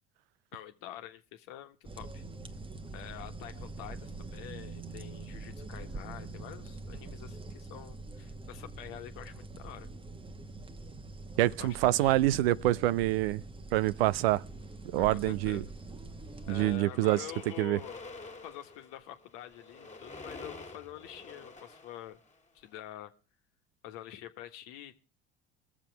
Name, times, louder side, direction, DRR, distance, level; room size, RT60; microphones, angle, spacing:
voice 1, 0.5-2.2 2.9-9.9 11.6-12.2 14.9-15.7 16.5-18.0 18.4-22.2 22.5-23.1 23.8-25.0, left 12 dB, 70° left, 1.4 m, -47 dB
sound 1, 1.8-16.8, right 2 dB, 15° right, 1.1 m, -44 dB
voice 2, 11.4-13.4 13.7-14.4 14.9-15.6 16.5-17.2 17.6-17.8, right 16 dB, 75° right, 0.6 m, -26 dB
sound 2, 13.9-14.9 15.7-15.9 16.2-22.7, left 3 dB, 25° left, 2.0 m, -49 dB
21.5 x 7.3 x 4.6 m
hypercardioid pair, 70°, 30 cm